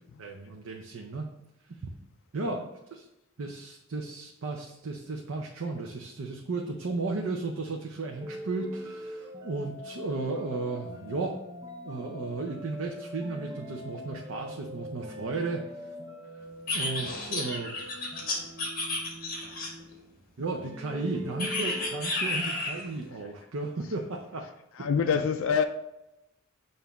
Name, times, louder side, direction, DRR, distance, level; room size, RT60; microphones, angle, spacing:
voice 1, 0.2-1.3 1.7-1.9 2.3-3.0 3.4-11.4 11.8-15.9 16.3-16.4 16.7-18.3 20.4-24.5 24.8-25.2, right 3 dB, 70° right, 0.6 m, -35 dB
sound 1, 8.2-20.2 20.7-22.0, equal, 15° right, 0.6 m, -43 dB
sound 2, 16.7-19.9 21.4-22.9, left 2 dB, 45° left, 1.4 m, -32 dB
voice 2, 24.4-25.6, left 6 dB, 65° left, 0.3 m, -27 dB
7.0 x 2.6 x 5.7 m
head